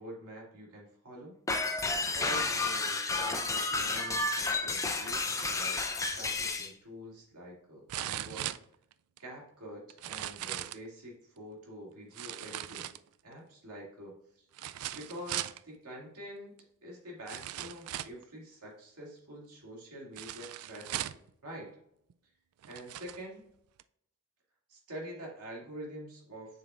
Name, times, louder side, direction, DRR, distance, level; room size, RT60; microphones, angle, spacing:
voice 1, 0.0-1.4 2.1-8.5 9.2-12.9 13.2-14.5 14.9-21.8 22.6-23.4 24.7-26.6, equal, 85° right, -3 dB, 2.4 m, -46 dB
sound 1, 1.5-6.7, left 3 dB, 15° left, 0.5 m, -31 dB
sound 2, 6.5-6.6 7.9-9.2 9.9-10.9 12.1-13.3 14.5-15.6 16.6-16.7 17.3-18.2 20.2-21.3 22.1-22.2 22.6-23.2 23.8-23.9, right 13 dB, 70° right, 0.3 m, -39 dB
7.1 x 5.6 x 2.4 m, 0.74 s
head